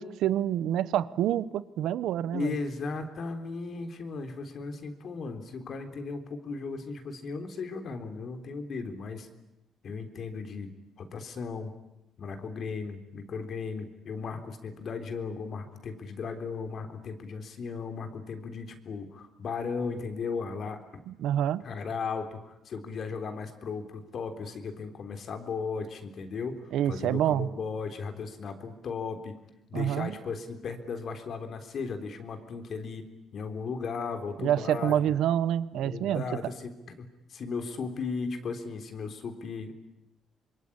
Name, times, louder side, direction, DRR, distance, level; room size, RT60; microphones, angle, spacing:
voice 1, 0.0-2.5 21.1-21.6 26.7-27.5 29.7-30.1 34.4-36.2, right 11 dB, 80° right, 17 dB, 1.0 m, -27 dB
voice 2, 2.3-9.3 9.8-10.7 11.0-11.7 12.2-21.0 21.6-29.3 29.7-33.1 33.3-35.0 35.7-39.7, left 4 dB, 60° left, 7 dB, 3.7 m, -36 dB
26.0 x 22.5 x 10.0 m, 0.92 s
cardioid pair, 90°, 0 cm